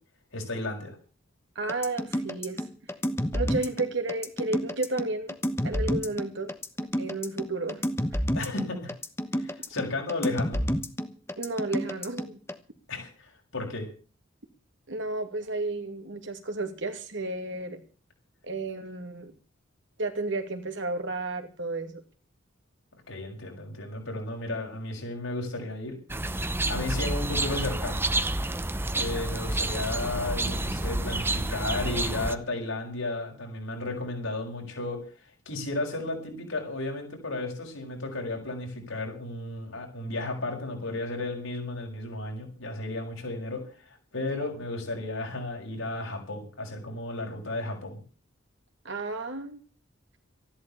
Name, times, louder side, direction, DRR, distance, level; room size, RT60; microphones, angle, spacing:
voice 1, 0.3-0.9 8.3-8.9 9.3-10.6 12.9-13.9 23.1-25.9 26.7-28.0 28.9-43.6 43.9-48.0, left 2 dB, 90° left, 1 dB, 6.7 m, -34 dB
voice 2, 1.6-2.7 3.3-5.4 5.6-6.5 7.0-7.8 11.4-12.4 14.9-17.8 18.4-19.3 20.0-22.0 48.8-49.6, right 2 dB, 65° right, 6 dB, 2.6 m, -32 dB
sound 1, 1.7-12.6, equal, 15° left, 1.1 m, -29 dB
sound 2, 26.1-32.3, right 2 dB, 10° right, 0.8 m, -29 dB
14.0 x 11.5 x 7.0 m, 0.38 s
head